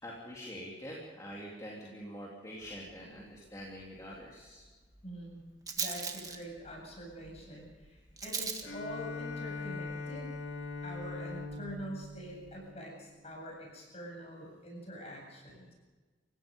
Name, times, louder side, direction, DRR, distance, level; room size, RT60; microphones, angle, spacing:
voice 1, 0.0-4.6, equal, 20° left, -4 dB, 3.3 m, -45 dB
Rattle, 2.6-12.6, right 5 dB, 20° right, 1.7 m, -44 dB
voice 2, 5.0-5.4 5.8-10.3 10.8-15.7, equal, 35° left, 0 dB, 7.8 m, -45 dB
Bowed string instrument, 8.6-13.3, left 3 dB, 75° left, 2.5 m, -42 dB
30.0 x 16.5 x 5.4 m, 1.3 s
head